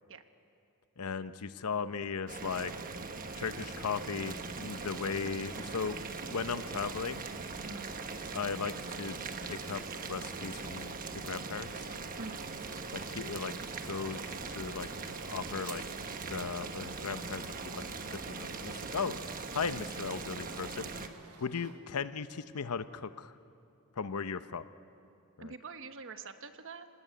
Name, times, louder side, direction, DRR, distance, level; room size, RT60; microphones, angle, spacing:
voice 1, 1.0-2.7 3.4-6.0 6.3-7.2 8.3-9.2 9.4-9.8 10.1-11.9 12.9-13.5 13.8-14.9 15.2-15.8 16.2-21.1 21.4-23.3 24.0-24.6 25.4-25.5, left 5 dB, 85° left, 12 dB, 0.7 m, -37 dB
Boiling, 2.3-21.1, right 4 dB, 40° right, 1.2 m, -41 dB
sound 1, 4.5-21.8, right 3 dB, 90° right, 2.0 m, -56 dB
voice 2, 25.4-26.9, right 4 dB, 60° right, 8 dB, 1.2 m, -45 dB
26.5 x 18.5 x 9.3 m, 2.7 s
head